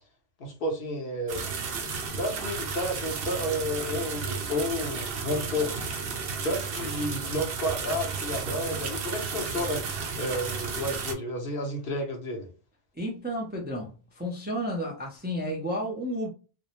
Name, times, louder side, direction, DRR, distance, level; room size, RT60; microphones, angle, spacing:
voice 1, 0.4-1.5 2.2-5.7 6.4-9.8 10.2-12.5, left 1 dB, 65° left, 0.9 m, -31 dB
sound 1, 1.3-11.1, right 5 dB, 70° right, 0.7 m, -33 dB
voice 2, 13.0-16.3, equal, 15° right, 0.4 m, -32 dB
2.6 x 2.0 x 2.8 m
omnidirectional pair, 1.1 m